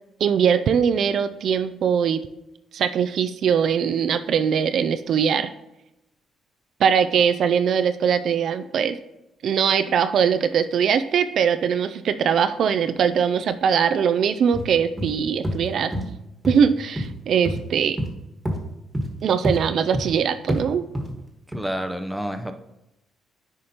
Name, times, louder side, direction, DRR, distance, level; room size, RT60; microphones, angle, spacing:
voice 1, 0.2-2.2 2.7-5.5 6.8-9.0 9.4-15.9 16.5-18.0 19.2-20.8, right 7 dB, 65° right, 11 dB, 0.3 m, -21 dB
sound 1, 14.5-14.7 15.0-15.1 15.4-15.6 15.9-16.1 16.4-16.6 17.0-17.1 17.5-17.6 18.0-18.1 18.5-18.6 18.9-19.1 19.4-19.6 19.9-20.1 20.5-20.6 20.9-21.1 21.5-21.6, equal, 15° right, 1.4 m, -26 dB
voice 2, 21.5-22.5, equal, ahead, 6 dB, 0.6 m, -29 dB
9.6 x 5.0 x 2.9 m, 0.89 s
cardioid pair, 90°, 0 cm